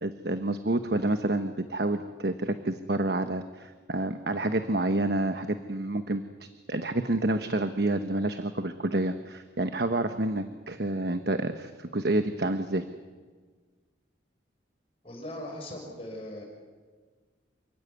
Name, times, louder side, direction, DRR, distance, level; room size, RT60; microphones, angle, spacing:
voice 1, 0.0-6.2 6.7-12.9, right 2 dB, 60° right, 8 dB, 1.1 m, -28 dB
voice 2, 15.0-16.4, left 1 dB, 30° left, 0 dB, 6.4 m, -39 dB
28.0 x 16.5 x 9.8 m, 1.5 s
head